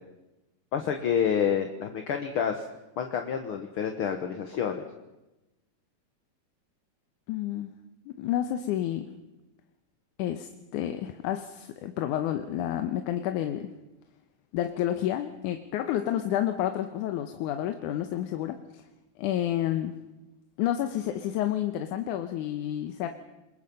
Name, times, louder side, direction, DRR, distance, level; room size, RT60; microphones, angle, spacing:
voice 1, 0.7-2.6 3.0-4.8, left 8 dB, 55° left, 5 dB, 1.7 m, -28 dB
voice 2, 7.3-7.7 8.1-9.1 10.2-13.7 14.5-18.8 19.2-20.0 20.6-23.1, left 11 dB, 75° left, 7 dB, 2.3 m, -30 dB
27.5 x 21.5 x 5.4 m, 0.99 s
omnidirectional pair, 3.7 m